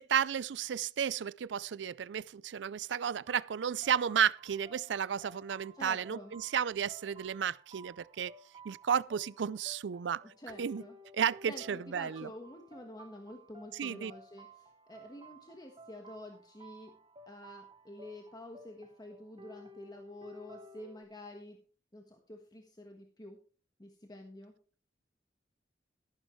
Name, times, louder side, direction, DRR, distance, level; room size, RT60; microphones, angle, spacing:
voice 1, 0.0-8.3 8.6-10.2 10.6-10.8 11.1-12.3 13.8-14.1, right 8 dB, 80° right, 0.4 m, -33 dB
sound 1, 3.3-21.0, right 1 dB, 30° right, 1.1 m, -55 dB
voice 2, 5.7-6.3 10.2-11.0 11.5-16.9 17.3-21.6 21.9-23.4 23.8-24.5, left 1 dB, 20° left, 1.4 m, -49 dB
13.5 x 11.5 x 3.2 m
head